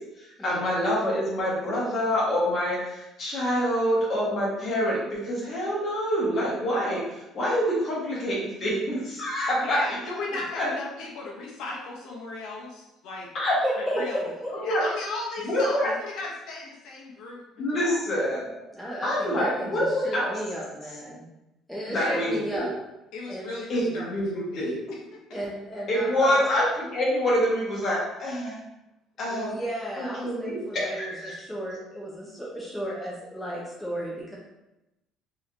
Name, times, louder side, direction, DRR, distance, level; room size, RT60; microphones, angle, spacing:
voice 1, 0.2-9.8 10.5-10.7 13.3-13.6 14.5-14.8 15.4-15.9 17.6-18.5 19.0-20.3 21.9-22.7 23.7-24.8 25.9-28.6 29.2-29.6 30.0-31.3, equal, 35° left, -5 dB, 1.0 m, -26 dB
voice 2, 9.6-13.3 13.8-14.3 14.6-18.0 21.9-22.2 23.1-25.4 28.7-28.8, left 2 dB, 65° left, -3 dB, 0.7 m, -36 dB
voice 3, 13.6-14.6 18.7-21.2 21.7-22.7 23.3-23.5 25.3-26.5 29.3-34.4, equal, ahead, -6 dB, 0.5 m, -34 dB
3.2 x 2.8 x 2.5 m, 0.94 s
cardioid pair, 170°, 0 cm